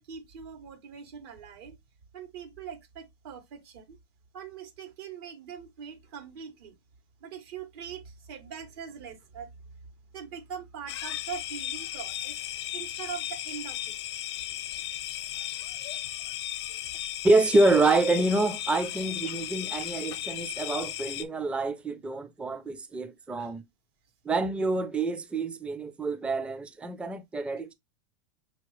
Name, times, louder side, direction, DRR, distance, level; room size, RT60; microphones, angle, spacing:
voice 1, 0.0-1.8 2.1-4.0 4.3-6.8 7.2-9.5 10.1-12.4 12.7-14.0 16.9-17.1 23.3-23.5, right 7 dB, 65° right, 1.5 m, -42 dB
sound 1, 10.9-21.2, left 12 dB, 80° left, 0.6 m, -36 dB
voice 2, 17.2-23.6 24.2-27.7, right 2 dB, 10° right, 0.4 m, -26 dB
5.7 x 2.8 x 3.0 m
supercardioid pair, 130°, 14 cm